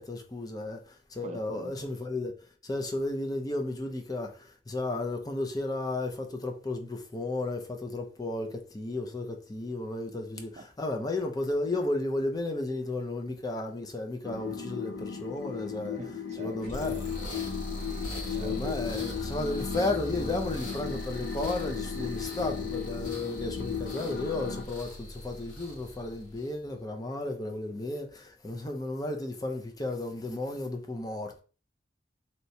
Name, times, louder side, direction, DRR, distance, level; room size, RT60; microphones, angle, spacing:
voice 1, 0.0-2.3 2.6-16.0 16.4-17.0 18.3-31.4, left 2 dB, 20° left, 0.5 m, -33 dB
voice 2, 1.2-1.9 10.6-10.7 16.0-17.0 17.7-18.7 22.0-22.1, right 2 dB, 40° right, 0.5 m, -44 dB
sound 1, 14.3-24.6, left 8 dB, 80° left, 0.5 m, -36 dB
sound 2, 16.6-26.6, left 1 dB, 55° left, 1.6 m, -39 dB
3.2 x 2.9 x 2.7 m
head